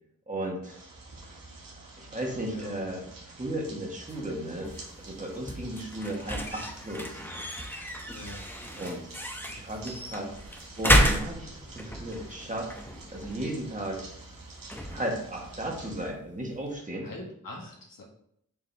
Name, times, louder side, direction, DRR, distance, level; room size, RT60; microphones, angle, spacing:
voice 1, 0.3-0.8 2.0-7.2 8.8-9.1 9.5-10.3 10.8-12.7 13.1-14.0 14.9-17.1, right 1 dB, 25° right, 0 dB, 1.5 m, -35 dB
sound 1, 0.6-16.1, right 2 dB, 90° right, 1.7 m, -48 dB
voice 2, 2.5-2.8 8.1-8.5 17.0-18.0, left 2 dB, 85° left, -1 dB, 1.7 m, -43 dB
sound 2, 4.0-16.8, equal, 5° left, 0.8 m, -32 dB
7.1 x 4.9 x 3.4 m, 0.72 s
wide cardioid pair, 140°, 33 cm